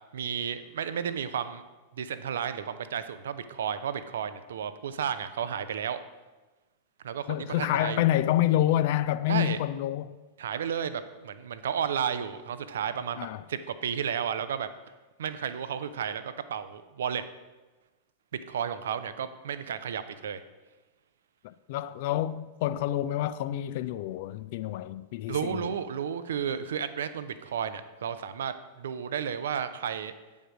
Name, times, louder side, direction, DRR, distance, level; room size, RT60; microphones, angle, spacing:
voice 1, 0.1-1.6 1.9-6.0 7.0-8.0 9.3-9.6 10.4-14.7 15.2-17.2 18.5-20.4 25.3-30.1, right 8 dB, 65° right, 0.5 m, -32 dB
voice 2, 7.3-10.2 13.2-13.4 21.4-25.7, left 13 dB, 50° left, 0.3 m, -28 dB
8.6 x 5.3 x 4.7 m
figure-of-eight pair, 90°, 0 cm